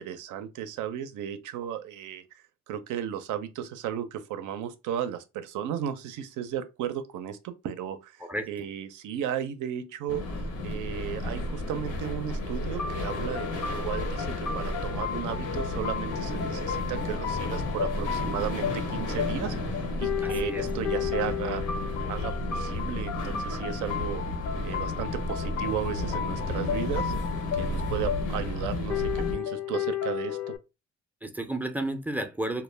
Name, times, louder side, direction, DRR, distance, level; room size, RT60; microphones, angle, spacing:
voice 1, 0.0-10.2 10.6-21.6 22.1-24.2 24.6-27.1 27.5-30.5, right 10 dB, 85° right, 0.5 m, -35 dB
sound 1, 10.1-29.4, left 1 dB, 90° left, 0.8 m, -32 dB
sound 2, 12.8-30.6, left 8 dB, 65° left, 0.5 m, -34 dB
voice 2, 20.2-20.7 31.2-32.6, right 1 dB, 5° right, 0.3 m, -32 dB
2.2 x 2.1 x 3.2 m
cardioid pair, 90°, 30 cm